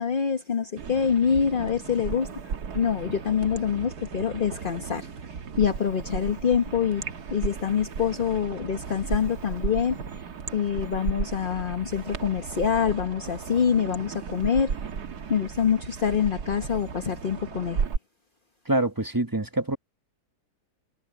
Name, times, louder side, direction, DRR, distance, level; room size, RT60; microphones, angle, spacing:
voice 1, 0.0-2.4 2.7-5.1 5.6-14.8 15.3-17.8, left 7 dB, 35° left, 1.3 m, -26 dB
sound 1, 0.8-18.0, right 6 dB, 80° right, 1.9 m, -35 dB
voice 2, 18.7-19.8, right 1 dB, 15° right, 1.1 m, -25 dB
omnidirectional pair, 1.7 m